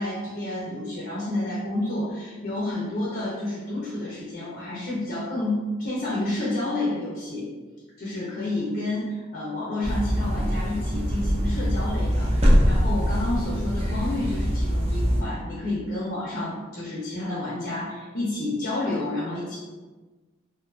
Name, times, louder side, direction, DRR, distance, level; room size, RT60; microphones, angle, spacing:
voice 1, 0.0-7.5 8.0-19.6, left 1 dB, 45° left, -7 dB, 0.5 m, -30 dB
sound 1, 9.8-15.2, equal, 30° right, 0.4 m, -23 dB
2.5 x 2.3 x 2.3 m, 1.3 s
head